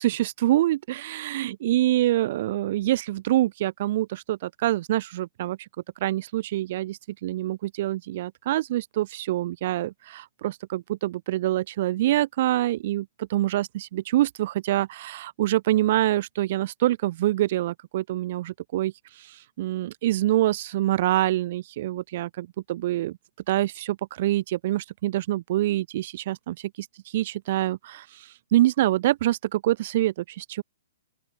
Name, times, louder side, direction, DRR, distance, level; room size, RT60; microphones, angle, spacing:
voice 1, 0.0-5.6 6.0-18.9 19.2-23.2 23.5-26.9 27.1-30.6, right 14 dB, 45° right, 2.5 m, -25 dB
open air
hypercardioid pair, 165°, 0 cm